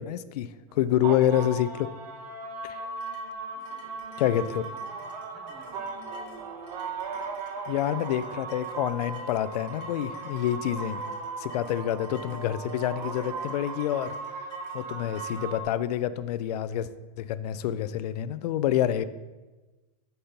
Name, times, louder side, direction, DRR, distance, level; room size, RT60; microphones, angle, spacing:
voice 1, 0.0-1.9 2.6-2.9 4.2-4.6 7.7-11.0 11.4-14.1 14.7-16.9 17.2-19.0, left 11 dB, 80° left, 15 dB, 0.4 m, -27 dB
sound 1, 0.7-15.6, right 4 dB, 90° right, 0.8 m, -37 dB
sound 2, 3.0-15.5, left 3 dB, 50° left, 1.0 m, -54 dB
voice 2, 3.5-5.0 5.3-7.2, left 1 dB, ahead, -4 dB, 1.1 m, -55 dB
5.4 x 5.1 x 4.3 m, 1.2 s
supercardioid pair, 165°, 20 cm